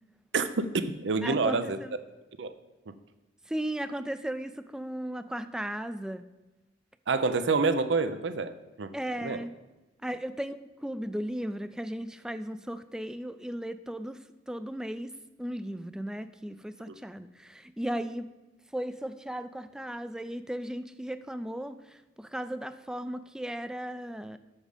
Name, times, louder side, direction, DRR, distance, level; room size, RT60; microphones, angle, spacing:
voice 1, 0.3-1.8 2.4-2.5 7.1-8.9 9.2-9.4 16.9-17.0, right 4 dB, 85° right, 11 dB, 0.6 m, -27 dB
voice 2, 1.2-1.9 3.5-6.2 8.9-9.5 10.0-14.2 14.5-15.1 15.4-18.3 18.7-24.4, right 1 dB, 5° right, 11 dB, 0.3 m, -36 dB
7.3 x 6.3 x 5.0 m, 1.1 s
head